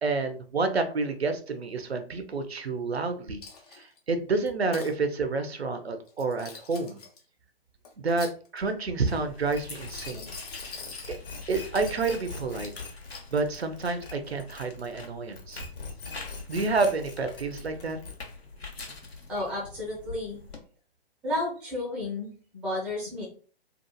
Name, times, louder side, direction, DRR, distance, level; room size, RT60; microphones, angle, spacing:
voice 1, 0.0-3.4 3.7-7.0 8.0-10.3 10.6-10.8 11.1-11.2 11.5-12.7 13.3-15.6 16.5-18.0, right 3 dB, 85° right, 8 dB, 0.6 m, -29 dB
Coin (dropping), 3.4-4.0 4.5-4.9 6.1-7.2 7.8-8.8 9.7-11.1 11.7-12.3 12.6-13.3, left 4 dB, 40° left, 0.7 m, -44 dB
sound 1, 9.0-20.6, left 4 dB, 80° left, 0.8 m, -45 dB
sound 2, 9.6-15.1 15.3-18.4, left 4 dB, 60° left, 1.0 m, -42 dB
voice 2, 19.3-20.4 21.2-23.3, left 1 dB, 5° right, -4 dB, 0.5 m, -32 dB
2.8 x 2.3 x 2.2 m, 0.41 s
figure-of-eight pair, 130°, 31 cm